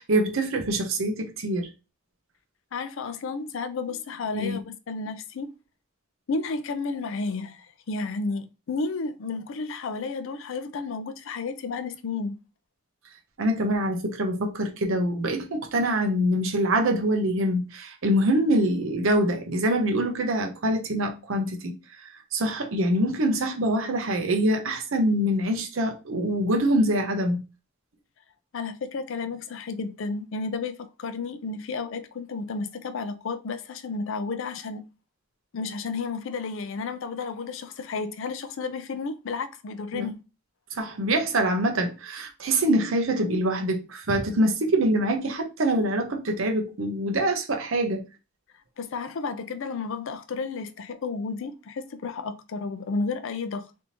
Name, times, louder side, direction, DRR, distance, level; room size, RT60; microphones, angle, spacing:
voice 1, 0.0-1.7 4.3-4.6 13.4-21.7 22.0-27.4 39.9-40.1 40.8-48.0, right 1 dB, 70° right, 0.7 m, -25 dB
voice 2, 2.7-5.5 6.3-12.4 28.5-34.9 35.5-40.2 48.8-53.7, left 4 dB, 65° left, 0.4 m, -32 dB
3.4 x 2.7 x 2.8 m
head